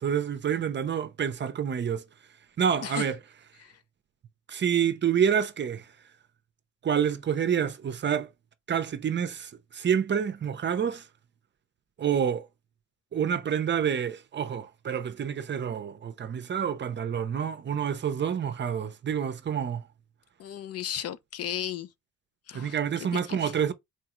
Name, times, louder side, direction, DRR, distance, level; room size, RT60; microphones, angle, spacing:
voice 1, 0.0-2.0 2.6-3.2 4.5-5.9 6.8-8.3 8.7-11.1 12.0-12.5 13.1-19.8 22.5-23.7, right 8 dB, 35° right, 0.6 m, -28 dB
voice 2, 20.4-21.9 22.5-22.8 23.1-23.5, left 10 dB, 55° left, 0.5 m, -35 dB
4.3 x 2.3 x 3.0 m
cardioid pair, 90°, 30 cm